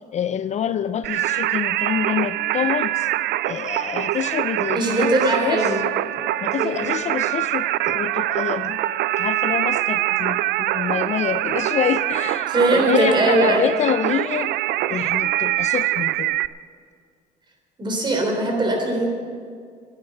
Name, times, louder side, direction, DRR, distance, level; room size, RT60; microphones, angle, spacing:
voice 1, 0.1-3.1 3.4-5.6 6.1-8.8 9.2-14.5 14.9-16.4, left 8 dB, 45° left, 12 dB, 0.4 m, -26 dB
Singing, 1.0-16.5, right 15 dB, 75° right, 0.4 m, -24 dB
voice 2, 4.7-5.8 6.6-6.9 12.5-13.7 17.8-19.1, right 2 dB, 25° right, 1 dB, 3.6 m, -20 dB
10.5 x 9.7 x 9.8 m, 2.1 s
cardioid pair, 110°, 17 cm